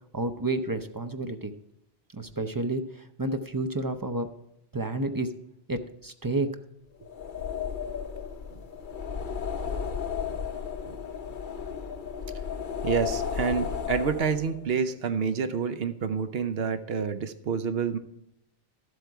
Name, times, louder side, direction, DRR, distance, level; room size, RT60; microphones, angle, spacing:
voice 1, 0.1-1.5 2.1-4.3 4.7-5.3 5.7-6.5, right 2 dB, 25° right, 8 dB, 0.5 m, -30 dB
sound 1, 7.1-14.6, left 7 dB, 50° left, 0.9 m, -34 dB
voice 2, 12.8-18.0, right 6 dB, 65° right, 10 dB, 0.9 m, -28 dB
12.5 x 8.0 x 4.7 m, 0.83 s
omnidirectional pair, 1.1 m